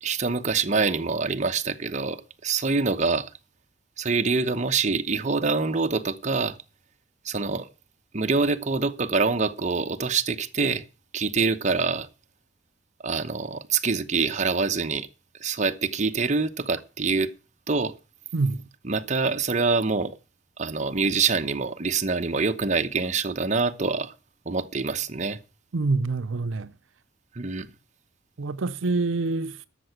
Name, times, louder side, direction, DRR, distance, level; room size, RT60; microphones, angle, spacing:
voice 1, 0.0-3.3 4.0-6.6 7.2-7.7 8.1-10.8 11.1-12.1 13.0-15.1 15.4-17.3 17.7-17.9 18.8-20.1 20.6-24.1 24.5-25.4 27.3-27.7, right 4 dB, 40° right, 1.0 m, -25 dB
voice 2, 25.7-26.7 28.4-29.5, right 3 dB, 90° right, 0.6 m, -26 dB
12.5 x 6.8 x 7.9 m
head